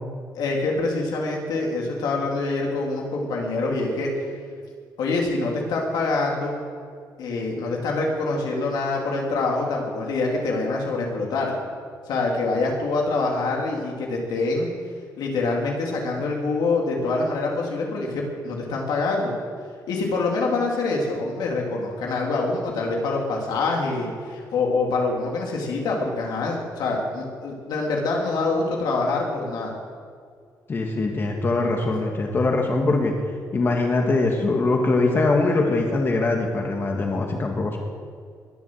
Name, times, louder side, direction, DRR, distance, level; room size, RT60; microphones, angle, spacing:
voice 1, 0.3-4.1 5.0-6.5 7.2-11.6 12.1-14.7 15.2-19.3 19.9-29.7, left 3 dB, 90° left, -1 dB, 3.3 m, -25 dB
voice 2, 30.7-33.1 33.5-37.8, left 3 dB, 30° left, 1 dB, 1.8 m, -22 dB
21.0 x 7.3 x 7.8 m, 2.1 s
cardioid pair, 140°, 7 cm